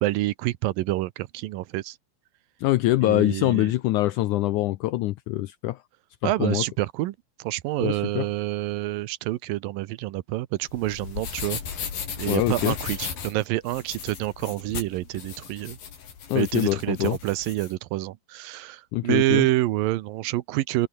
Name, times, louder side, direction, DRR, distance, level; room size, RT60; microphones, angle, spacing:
voice 1, 0.0-2.0 3.0-3.7 6.2-11.6 12.2-15.8 16.3-20.9, right 17 dB, 75° right, 2.4 m, -27 dB
voice 2, 2.6-5.8 6.2-6.6 7.8-8.3 12.3-12.7 16.3-17.2 18.9-19.5, left 17 dB, 85° left, 1.8 m, -24 dB
sound 1, 10.6-17.7, left 7 dB, 70° left, 5.4 m, -36 dB
omnidirectional pair, 4.3 m